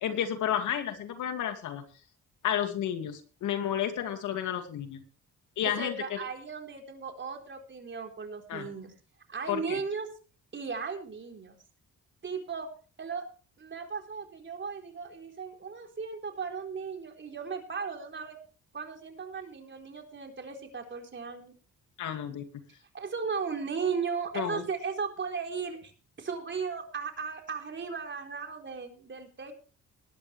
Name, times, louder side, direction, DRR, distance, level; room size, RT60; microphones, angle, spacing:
voice 1, 0.0-1.8 2.4-5.0 5.6-6.2 8.5-8.7 9.5-9.8 22.0-22.4 24.3-24.6, left 10 dB, 75° left, 7 dB, 2.5 m, -31 dB
voice 2, 5.6-8.9 9.3-10.1 10.5-11.6 12.2-12.7 13.0-13.3 13.6-18.4 18.7-21.5 22.9-25.9 26.2-29.5, right 5 dB, 40° right, 3 dB, 4.1 m, -36 dB
20.5 x 10.5 x 3.4 m, 0.38 s
cardioid pair, 90°, 30 cm